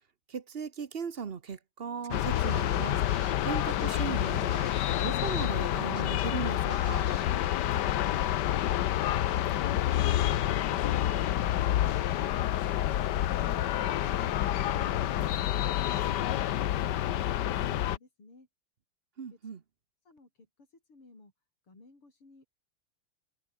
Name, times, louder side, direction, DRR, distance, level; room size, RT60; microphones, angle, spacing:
voice 1, 0.3-3.0 3.4-7.1 19.2-19.6, right 6 dB, 40° right, 0.8 m, -38 dB
Scratching (performance technique), 2.0-2.1 2.4-5.7 6.0-7.2, right 6 dB, 75° right, 3.4 m, -50 dB
sound 1, 2.1-18.0, left 12 dB, 65° left, 1.2 m, -28 dB
voice 2, 16.7-18.5 19.3-19.5 20.0-21.3 21.6-22.4, left 3 dB, 80° left, 8.0 m, -58 dB
omnidirectional pair, 2.4 m